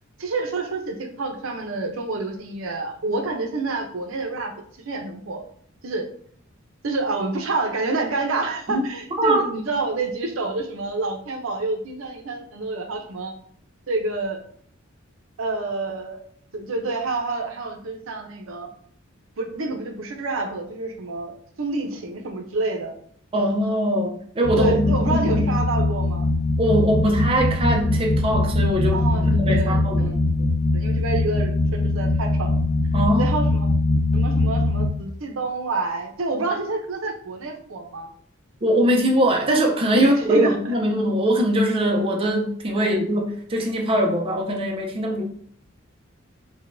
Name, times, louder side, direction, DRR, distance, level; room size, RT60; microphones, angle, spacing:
voice 1, 0.2-4.5 4.8-5.4 5.8-6.0 6.8-13.3 13.9-14.4 15.4-16.2 16.5-18.7 19.4-22.9 24.6-26.3 28.9-30.2 30.7-32.6 33.2-33.7 34.1-38.1 39.9-40.5 42.8-43.0, right 3 dB, 80° right, 3 dB, 0.6 m, -28 dB
voice 2, 23.3-25.5 26.6-30.1 32.9-33.4 38.6-45.2, equal, 25° right, 1 dB, 0.5 m, -22 dB
sound 1, 24.4-34.9, left 2 dB, 20° left, 0.7 m, -22 dB
4.9 x 2.2 x 2.5 m, 0.62 s
head